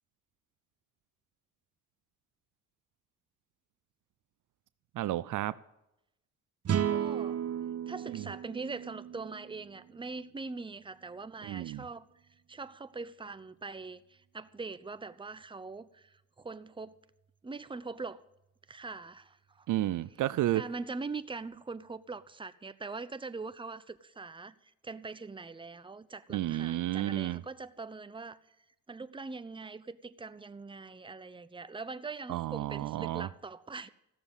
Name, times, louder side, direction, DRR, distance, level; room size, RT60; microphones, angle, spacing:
voice 1, 4.9-5.5 8.1-8.3 11.4-11.8 19.7-20.6 26.3-27.4 32.3-33.3, right 14 dB, 65° right, 17 dB, 0.6 m, -31 dB
sound 1, 6.6-10.0, right 9 dB, 45° right, 0.9 m, -34 dB
voice 2, 6.9-7.4 7.9-12.1 12.5-16.9 17.4-18.2 18.7-19.7 20.5-28.4 28.9-33.9, right 4 dB, 15° right, 13 dB, 0.8 m, -42 dB
15.5 x 7.0 x 9.8 m, 0.86 s
supercardioid pair, 65°, 33 cm